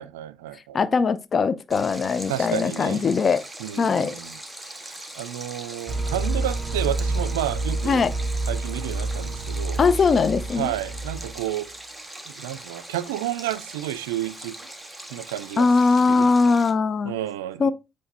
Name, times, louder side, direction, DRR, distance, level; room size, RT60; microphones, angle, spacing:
voice 1, 0.0-0.8 2.3-3.1 3.6-4.4 4.7-8.0 8.5-9.8 10.5-11.7 12.3-14.6 15.1-15.7 16.1-16.3 17.1-17.7, right 13 dB, 85° right, 0.4 m, -31 dB
voice 2, 0.7-3.4 3.8-4.1 7.9-8.1 9.8-10.7 15.6-17.2 17.6-17.7, left 4 dB, 45° left, 0.5 m, -20 dB
Stream, 1.7-16.7, right 1 dB, 5° right, 1.7 m, -41 dB
sound 1, 5.9-11.6, right 2 dB, 35° right, 1.7 m, -28 dB
7.8 x 3.1 x 4.0 m
hypercardioid pair, 55°, 0 cm